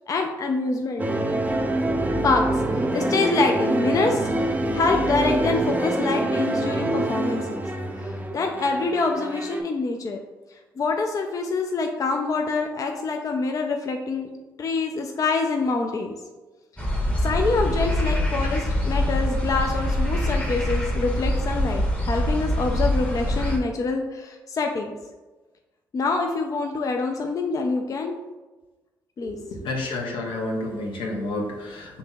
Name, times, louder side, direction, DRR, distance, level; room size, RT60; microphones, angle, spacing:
voice 1, 0.1-1.1 2.2-7.6 8.0-10.2 10.8-14.3 14.6-16.1 17.2-25.0 25.9-28.2 29.2-29.4, left 3 dB, 40° left, 3 dB, 0.4 m, -26 dB
sound 1, 1.0-9.6, right 1 dB, 20° right, 0.5 m, -25 dB
sound 2, 16.8-23.6, left 1 dB, 15° left, 0.9 m, -24 dB
voice 2, 29.2-32.0, left 2 dB, 75° left, 0 dB, 0.8 m, -30 dB
5.3 x 2.9 x 2.3 m, 1.2 s
supercardioid pair, 60°, 8 cm